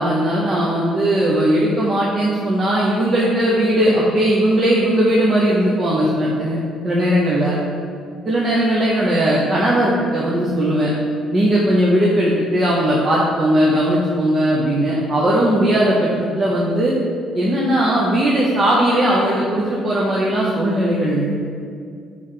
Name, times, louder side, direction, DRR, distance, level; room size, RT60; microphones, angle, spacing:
voice 1, 0.0-7.6 8.2-10.9 11.3-16.9 17.3-21.4, right 1 dB, 30° right, -5 dB, 0.7 m, -18 dB
5.4 x 3.3 x 5.6 m, 2.3 s
cardioid pair, 150°, 0 cm